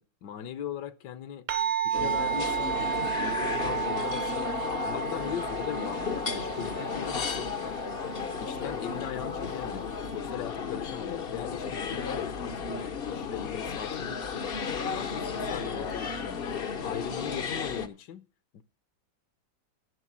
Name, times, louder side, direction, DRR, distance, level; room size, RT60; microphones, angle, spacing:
voice 1, 0.0-1.5 1.8-4.6 4.8-7.8 8.3-14.5 14.8-16.4 16.8-18.3 18.5-18.6, left 9 dB, 70° left, 1.4 m, -39 dB
sound 1, 1.5-10.2, right 9 dB, 55° right, 1.1 m, -34 dB
sound 2, 1.9-17.9, left 6 dB, 50° left, 0.7 m, -33 dB
11.0 x 6.9 x 7.4 m
omnidirectional pair, 2.1 m